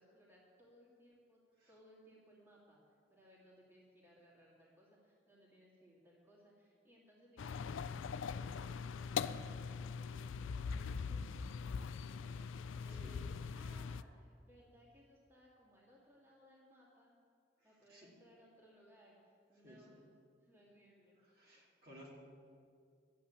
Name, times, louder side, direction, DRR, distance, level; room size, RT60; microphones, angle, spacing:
voice 1, 0.0-1.4 1.7-2.8 3.1-17.2 17.6-20.1 20.4-21.2, equal, 10° right, -5 dB, 2.4 m, -64 dB
sound 1, 7.4-14.0, left 6 dB, 80° left, 0.4 m, -42 dB
voice 2, 19.6-20.0 21.4-22.1, equal, 50° right, -4 dB, 2.6 m, -57 dB
12.0 x 8.5 x 8.2 m, 2.2 s
head